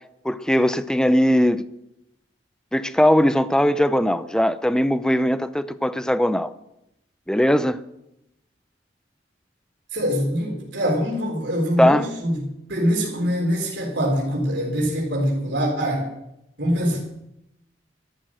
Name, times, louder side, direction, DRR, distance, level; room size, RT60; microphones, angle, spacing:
voice 1, 0.2-1.6 2.7-6.5 7.3-7.8 11.8-12.1, equal, 5° left, 0.6 m, -19 dB
voice 2, 9.9-16.1 16.6-17.0, equal, 75° right, 4.0 m, -24 dB
13.5 x 11.5 x 7.6 m
head